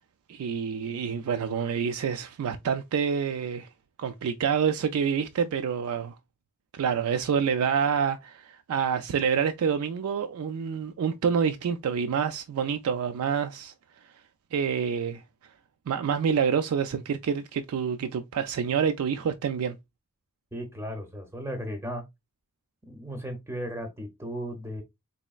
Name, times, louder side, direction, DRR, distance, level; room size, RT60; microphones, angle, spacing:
voice 1, 0.3-3.7 4.0-6.2 6.7-13.7 14.5-15.2 15.9-19.8, right 7 dB, 80° right, 0.4 m, -27 dB
voice 2, 20.5-22.0 22.9-24.8, equal, 15° right, 0.5 m, -35 dB
4.1 x 3.1 x 2.3 m
head